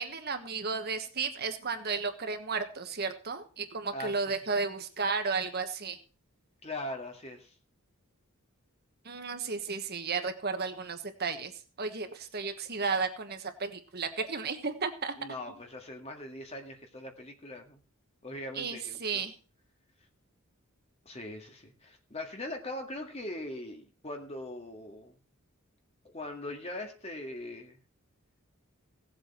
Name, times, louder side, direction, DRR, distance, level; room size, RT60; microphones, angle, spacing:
voice 1, 0.0-6.0 9.0-11.5 11.8-15.1 18.5-19.3, right 4 dB, 45° right, 7 dB, 1.3 m, -33 dB
voice 2, 3.9-4.2 6.6-7.5 15.2-17.8 18.2-19.3 21.1-25.1 26.0-27.8, left 1 dB, 30° left, 3 dB, 2.1 m, -41 dB
17.5 x 7.8 x 4.5 m, 0.37 s
head